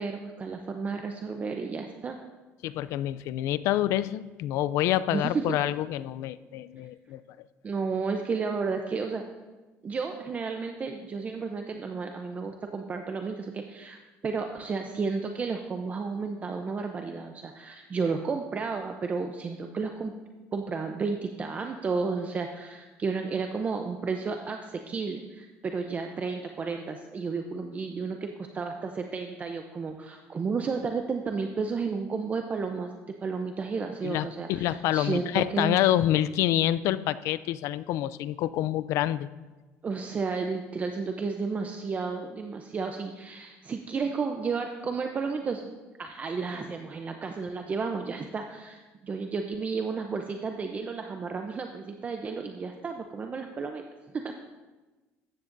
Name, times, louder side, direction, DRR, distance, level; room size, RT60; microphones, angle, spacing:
voice 1, 0.0-2.2 5.1-5.6 7.6-9.2 9.8-14.0 14.2-20.1 20.5-32.9 33.2-35.9 39.8-45.7 46.0-53.8 54.1-54.3, right 4 dB, 30° right, 5 dB, 0.6 m, -32 dB
voice 2, 2.6-7.2 34.0-39.3, left 13 dB, 70° left, 16 dB, 0.4 m, -27 dB
14.0 x 9.8 x 2.6 m, 1.2 s
cardioid pair, 120°, 5 cm